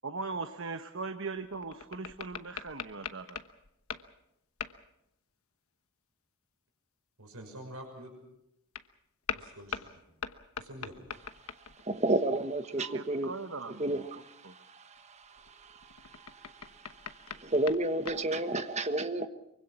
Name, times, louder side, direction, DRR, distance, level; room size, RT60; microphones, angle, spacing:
voice 1, 0.0-3.4 12.8-14.1 14.4-14.5, right 4 dB, 60° right, 1.1 m, -39 dB
sound 1, 1.3-4.2 4.6-4.9 8.7-8.9 9.3-11.9 15.0-18.2, left 7 dB, 75° left, 1.1 m, -42 dB
voice 2, 7.2-8.1 9.3-10.0 10.6-10.9, right 1 dB, 85° right, 6.1 m, -46 dB
voice 3, 11.8-13.3 13.8-19.3, right 2 dB, 30° right, 1.2 m, -32 dB
24.5 x 24.0 x 5.9 m
head